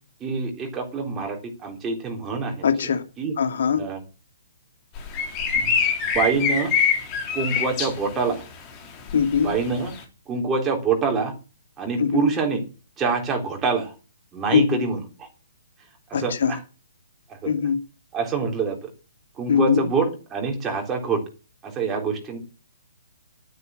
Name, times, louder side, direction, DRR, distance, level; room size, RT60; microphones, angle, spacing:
voice 1, 0.2-2.7 3.2-3.3 3.8-4.0 5.5-5.7 6.0-6.7 7.3-8.4 9.4-9.9 10.3-11.3 11.8-12.6 13.0-13.9 14.3-15.3 16.1-16.6 17.3-17.5 18.1-18.9 19.4-21.2 21.6-22.4, right 4 dB, 15° right, 3.7 m, -25 dB
voice 2, 2.6-3.0 3.4-3.8 9.1-9.5 12.0-12.2 14.5-14.8 16.1-16.5 17.5-17.8 19.5-19.8, left 7 dB, 50° left, 2.4 m, -21 dB
sound 1, 5.0-7.9 9.1-9.6, left 6 dB, 25° left, 3.7 m, -23 dB
11.5 x 9.6 x 7.7 m
figure-of-eight pair, 125°, 0 cm